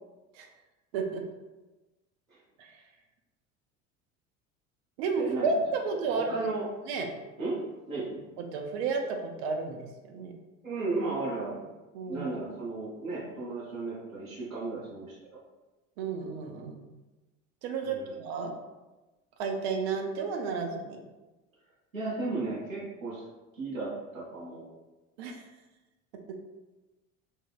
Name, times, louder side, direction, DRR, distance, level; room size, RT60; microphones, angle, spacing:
voice 1, 0.9-1.2 2.6-2.8 5.0-6.4 6.9-7.1 8.4-10.3 11.9-12.3 16.0-16.9 17.6-18.6 19.4-21.0 25.2-25.4 26.3-26.6, right 4 dB, 50° right, 3 dB, 0.5 m, -32 dB
voice 2, 5.2-6.7 7.4-7.6 7.9-8.2 10.6-11.7 12.1-15.2 17.8-18.1 21.9-23.2 23.5-24.7, right 3 dB, 85° right, -8 dB, 0.7 m, -35 dB
3.3 x 2.1 x 2.4 m, 1.1 s
figure-of-eight pair, 65°, 40 cm